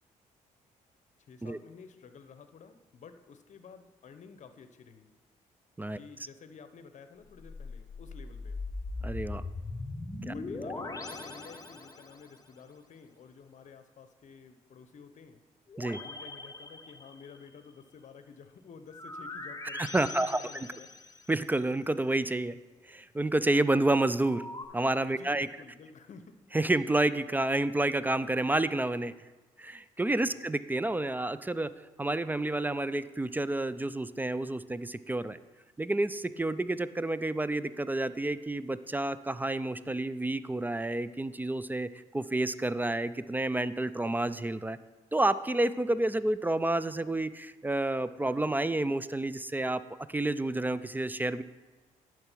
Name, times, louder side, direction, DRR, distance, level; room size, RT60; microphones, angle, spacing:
voice 1, 1.2-5.1 5.9-8.6 10.2-15.4 16.0-20.9 25.0-26.4 30.2-30.5, left 5 dB, 50° left, 10 dB, 0.8 m, -52 dB
sound 1, 7.3-12.4 15.7-17.5 18.9-21.5 24.2-24.7, left 3 dB, 25° left, 0.9 m, -41 dB
voice 2, 9.0-9.4 10.2-10.3 15.8-16.0 19.7-20.4 21.3-22.6 22.8-24.4 24.7-25.5 26.5-29.1 29.6-31.7 32.0-35.4 35.8-44.8 45.1-49.8 50.1-51.4, right 2 dB, 10° right, 15 dB, 0.3 m, -29 dB
10.5 x 4.7 x 4.5 m, 1.2 s
supercardioid pair, 65°, 15 cm